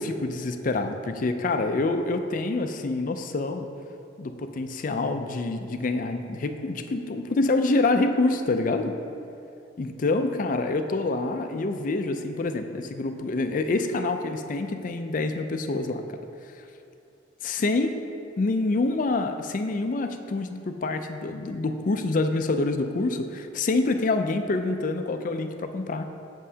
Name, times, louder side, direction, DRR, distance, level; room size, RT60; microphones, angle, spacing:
voice 1, 0.0-3.7 4.2-8.9 9.8-16.0 17.4-18.0 18.4-26.1, left 2 dB, 45° left, 7 dB, 0.4 m, -26 dB
7.6 x 7.1 x 2.8 m, 2.6 s
head